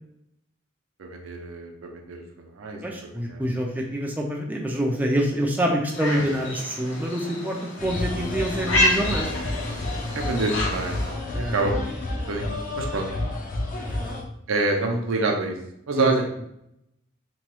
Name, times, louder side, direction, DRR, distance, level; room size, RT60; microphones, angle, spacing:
voice 1, 1.0-2.8 3.3-3.5 6.1-6.3 10.1-11.7 12.1-13.1 14.5-15.6 15.9-16.2, right 3 dB, 75° right, 2 dB, 0.5 m, -27 dB
voice 2, 2.8-9.3 11.3-11.7 13.8-14.2 15.9-16.1, equal, 10° right, 0 dB, 0.3 m, -26 dB
sound 1, 5.9-11.2, left 1 dB, 65° left, 0.8 m, -29 dB
sound 2, 7.8-14.2, left 2 dB, 40° left, 0.5 m, -30 dB
2.9 x 2.2 x 3.0 m, 0.76 s
head